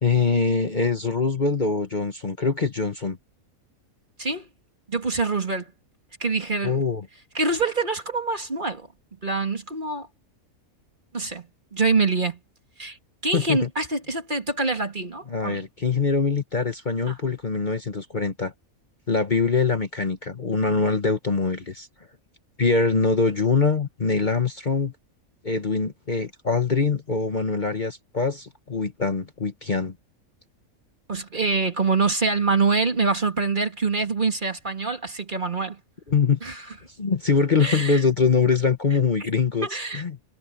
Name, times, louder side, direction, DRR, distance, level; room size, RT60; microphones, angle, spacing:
voice 1, 0.0-3.2 6.6-7.0 13.3-13.7 15.3-18.5 19.1-21.9 22.6-24.9 25.4-29.9 36.1-36.4 37.0-39.7 39.9-40.2, left 4 dB, 35° left, 1.3 m, -23 dB
voice 2, 4.9-5.7 6.2-6.8 7.3-8.9 9.2-10.1 11.1-12.4 12.8-13.0 13.2-15.6 17.1-17.2 31.1-35.8 36.4-36.6 37.6-38.0 39.2-39.3 39.6-40.0, right 4 dB, 35° right, 2.3 m, -25 dB
omnidirectional pair, 1.5 m